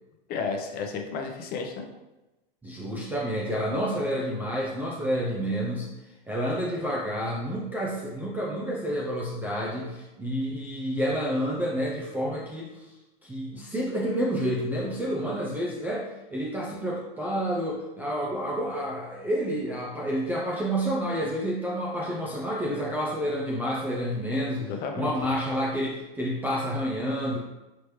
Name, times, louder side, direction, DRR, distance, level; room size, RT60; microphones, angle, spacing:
voice 1, 0.3-1.9 24.6-25.1, left 5 dB, 30° left, 3 dB, 0.7 m, -32 dB
voice 2, 2.6-5.9 6.3-12.9 13.2-24.6 25.0-27.4, equal, 5° right, -4 dB, 0.3 m, -29 dB
5.1 x 3.0 x 3.1 m, 1.0 s
hypercardioid pair, 120°, 29 cm